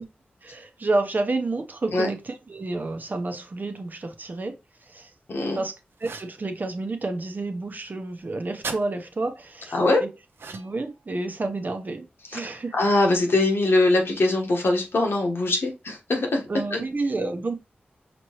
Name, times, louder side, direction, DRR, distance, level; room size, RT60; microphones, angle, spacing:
voice 1, 0.4-4.6 4.9-5.1 5.5-5.7 6.0-10.1 10.5-12.1 12.3-12.8 16.5-17.5, right 2 dB, 50° right, 0.8 m, -29 dB
voice 2, 5.3-5.6 9.7-10.0 12.3-12.4 12.7-16.8, left 2 dB, 75° left, 1.2 m, -22 dB
sound 1, 6.0-6.4 8.6-8.8 10.3-10.9, right 4 dB, 80° right, 0.6 m, -36 dB
5.1 x 3.0 x 2.9 m
cardioid pair, 45°, 4 cm